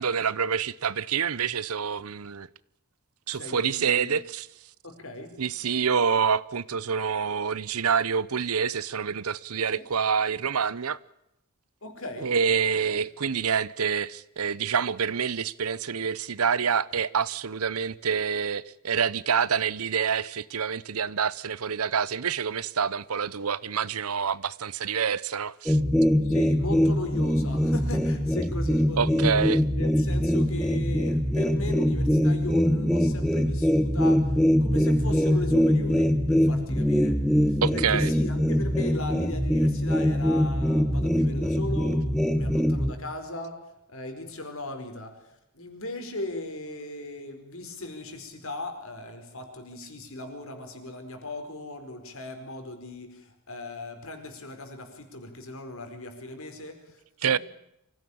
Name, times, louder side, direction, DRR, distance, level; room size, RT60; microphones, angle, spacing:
voice 1, 0.0-2.5 3.3-4.5 5.4-11.0 12.2-25.8 29.0-29.6 37.6-38.1 57.2-57.4, right 6 dB, 80° right, 0.8 m, -27 dB
voice 2, 3.3-4.2 4.8-5.4 9.7-9.8 11.8-12.3 12.8-13.0 26.2-29.3 29.7-37.2 37.5-42.1 42.3-43.6 43.9-45.2 45.5-57.0 57.2-57.4, left 2 dB, 65° left, 4.8 m, -38 dB
sound 1, 25.7-42.9, equal, ahead, 1.4 m, -23 dB
25.0 x 16.5 x 8.6 m
head